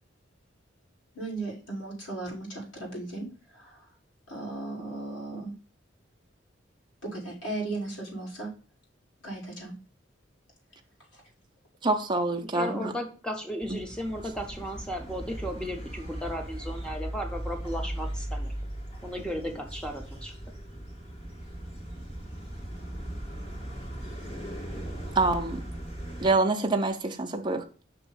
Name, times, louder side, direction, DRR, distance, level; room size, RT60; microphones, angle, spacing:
voice 1, 1.1-3.3 3.5-3.9 4.3-5.5 7.0-8.5 9.2-9.7 11.1-11.2, right 2 dB, 90° left, 2.9 m, -36 dB
voice 2, 11.8-12.9 13.7-13.8 25.2-25.6 26.2-27.6, right 3 dB, 25° right, 0.6 m, -26 dB
voice 3, 12.5-18.5 19.0-20.3, equal, 5° left, 0.9 m, -35 dB
sound 1, 13.6-26.3, right 1 dB, 30° left, 1.8 m, -38 dB
6.1 x 3.0 x 5.5 m
head